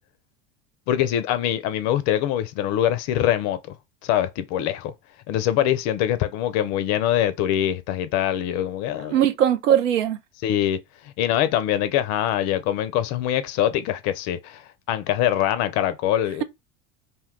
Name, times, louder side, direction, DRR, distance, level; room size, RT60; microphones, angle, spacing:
voice 1, 0.9-3.7 4.0-4.9 5.3-9.1 10.4-10.8 11.2-16.4, left 11 dB, 45° left, 0.5 m, -23 dB
voice 2, 9.1-10.2, right 10 dB, 70° right, 0.6 m, -20 dB
2.6 x 2.2 x 3.5 m
figure-of-eight pair, 80°, 39 cm